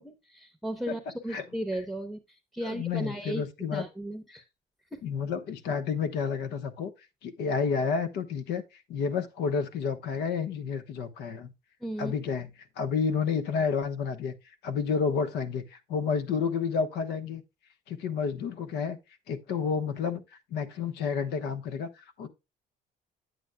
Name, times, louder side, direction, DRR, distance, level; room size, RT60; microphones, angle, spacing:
voice 1, 0.0-3.4 3.7-4.4 4.9-5.0 11.8-12.1, right 1 dB, ahead, 0.8 m, -36 dB
voice 2, 2.6-3.8 5.0-6.9 7.2-11.5 12.0-12.5 12.8-14.4 14.6-17.4 17.9-19.0 19.3-20.2 20.5-22.3, left 6 dB, 85° left, 1.1 m, -30 dB
9.3 x 8.1 x 2.2 m
cardioid pair, 110°, 17 cm